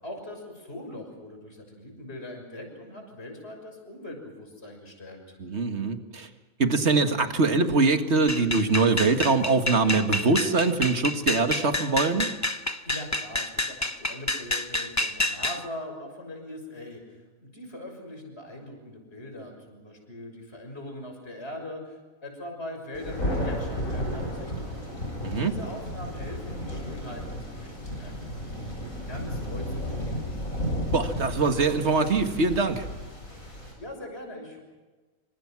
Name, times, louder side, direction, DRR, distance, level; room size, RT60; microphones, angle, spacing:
voice 1, 0.0-5.4 12.8-24.7 25.3-30.2 33.5-34.6, left 1 dB, 50° left, 3 dB, 6.8 m, -41 dB
voice 2, 5.4-6.3 6.6-12.3 25.2-25.5 30.9-32.9, right 3 dB, 55° right, 6 dB, 2.1 m, -23 dB
sound 1, 8.3-15.6, left 1 dB, 15° left, 0.6 m, -29 dB
Thunder, 22.9-33.7, equal, 85° left, 8.1 m, -33 dB
28.0 x 26.0 x 6.1 m, 1.3 s
omnidirectional pair, 1.4 m